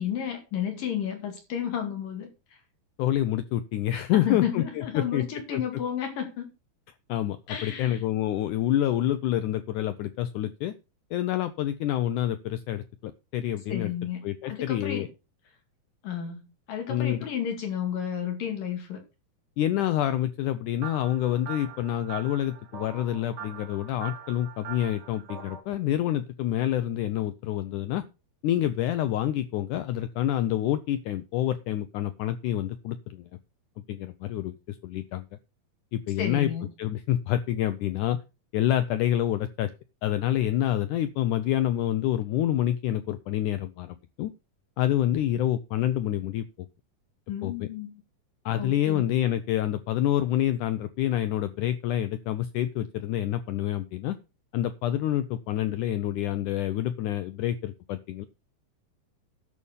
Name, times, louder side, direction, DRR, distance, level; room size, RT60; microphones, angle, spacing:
voice 1, 0.0-2.6 4.1-6.5 7.5-8.0 13.7-15.1 16.0-19.0 36.2-36.7 47.3-48.0 48.5-49.0, left 9 dB, 65° left, 3.9 m, -32 dB
voice 2, 3.0-5.3 5.5-5.6 7.1-10.7 11.1-13.9 14.2-15.1 16.9-17.3 19.6-28.0 28.4-33.3 33.9-35.2 35.9-36.5 36.8-38.2 38.5-39.7 40.0-44.3 44.8-46.4 47.4-47.7 48.5-54.2 54.5-58.3, left 12 dB, 80° left, 1.8 m, -27 dB
sound 1, 20.8-25.6, right 9 dB, 75° right, 4.1 m, -42 dB
11.0 x 7.0 x 5.4 m
omnidirectional pair, 4.3 m